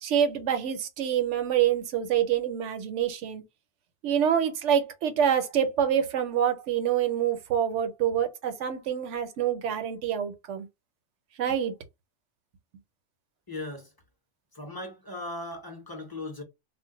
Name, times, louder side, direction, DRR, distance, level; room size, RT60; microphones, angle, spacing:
voice 1, 0.0-3.4 4.0-10.7 11.4-11.7, right 9 dB, 70° right, 1.0 m, -26 dB
voice 2, 13.5-13.9 14.5-16.4, left 2 dB, 25° left, 0.6 m, -38 dB
2.4 x 2.1 x 3.8 m
omnidirectional pair, 1.3 m